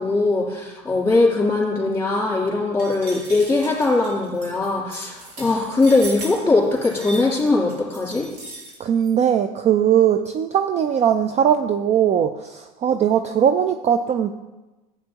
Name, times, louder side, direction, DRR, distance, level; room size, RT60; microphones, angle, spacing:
voice 1, 0.0-8.3, left 3 dB, 10° left, -3 dB, 3.0 m, -20 dB
sound 1, 2.8-9.1, right 2 dB, 85° right, 2.7 m, -38 dB
voice 2, 8.8-14.3, right 9 dB, 35° right, 8 dB, 0.4 m, -19 dB
11.5 x 8.1 x 2.9 m, 1.1 s
supercardioid pair, 95°, 21 cm